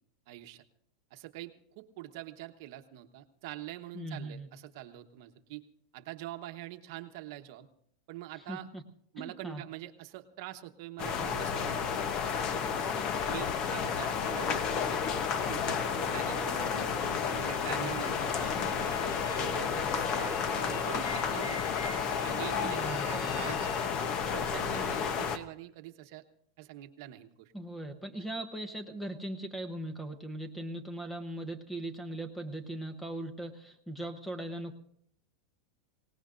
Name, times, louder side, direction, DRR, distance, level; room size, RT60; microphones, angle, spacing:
voice 1, 0.3-0.6 1.1-5.6 5.9-7.7 8.1-8.7 9.1-11.9 12.2-12.8 13.3-15.0 15.4-17.0 17.3-21.7 22.2-26.2 26.6-27.5, right 14 dB, 55° right, 7 dB, 1.1 m, -45 dB
voice 2, 3.9-4.5 8.5-8.8 9.2-9.6 17.7-18.1 22.6-23.6 27.5-34.8, right 1 dB, 5° left, 9 dB, 0.9 m, -39 dB
sound 1, 11.0-25.4, left 6 dB, 35° left, 0.9 m, -32 dB
sound 2, 14.1-25.1, left 3 dB, 90° left, 4.8 m, -43 dB
25.5 x 18.0 x 2.6 m, 0.65 s
supercardioid pair, 155°, 2 cm